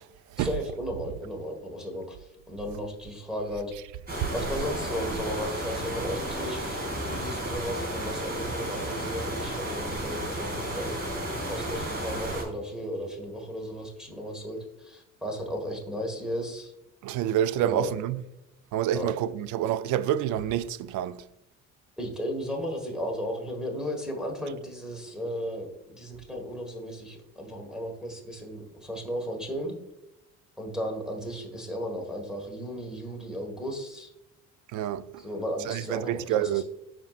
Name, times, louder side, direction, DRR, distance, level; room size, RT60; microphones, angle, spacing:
voice 1, 0.3-3.7 4.3-6.8 7.0-10.9 11.5-16.7 17.6-17.9 18.9-19.1 22.0-29.7 30.6-34.1 35.2-36.6, equal, ahead, 1.5 m, -35 dB
sound 1, 4.1-12.4, right 1 dB, 30° right, 2.8 m, -32 dB
voice 2, 17.0-18.2 18.7-19.1 19.5-20.7 20.9-21.1 34.7-35.0 35.9-36.6, right 11 dB, 65° right, 0.5 m, -26 dB
13.0 x 4.6 x 2.4 m
cardioid pair, 130°, 32 cm